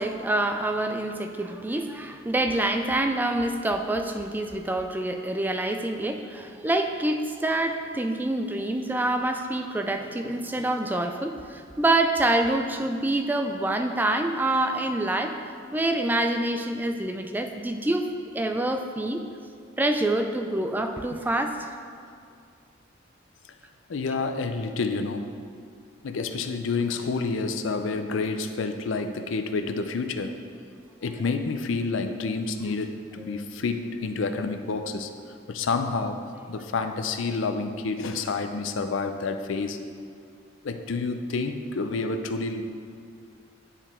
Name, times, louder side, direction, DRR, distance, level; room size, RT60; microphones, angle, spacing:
voice 1, 0.0-15.4 15.7-18.1 18.3-19.2 19.8-21.7 33.3-33.4, right 1 dB, 10° right, 5 dB, 0.3 m, -26 dB
voice 2, 23.9-25.3 26.0-30.4 31.0-35.1 35.5-36.2 36.5-39.8 40.6-42.6, left 4 dB, 80° left, 7 dB, 0.5 m, -29 dB
9.9 x 4.5 x 3.6 m, 2.3 s
head